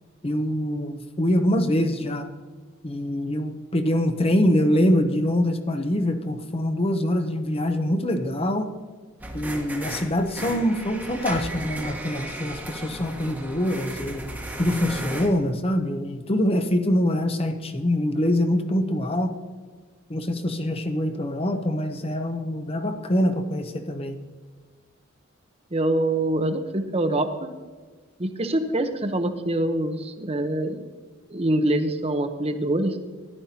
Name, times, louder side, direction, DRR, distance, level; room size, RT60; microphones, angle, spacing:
voice 1, 0.2-2.3 2.8-8.7 9.3-14.2 14.6-19.3 20.1-24.2, left 1 dB, 30° left, 7 dB, 0.7 m, -24 dB
sound 1, 9.2-15.3, right 1 dB, 10° right, 1.2 m, -35 dB
voice 2, 25.7-27.5 28.2-30.9 31.3-33.0, right 1 dB, 30° right, 8 dB, 0.8 m, -25 dB
14.0 x 10.5 x 2.8 m, 1.4 s
head